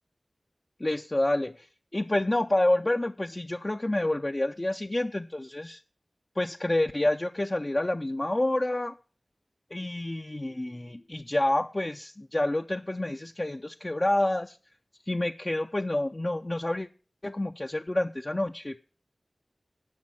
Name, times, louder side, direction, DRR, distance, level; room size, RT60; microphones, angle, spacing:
voice 1, 0.8-5.8 6.4-9.0 9.7-14.6 15.1-16.9 17.2-18.8, left 1 dB, 35° left, 5 dB, 0.4 m, -28 dB
11.5 x 5.5 x 7.3 m, 0.38 s
wide cardioid pair, 45°, 0 cm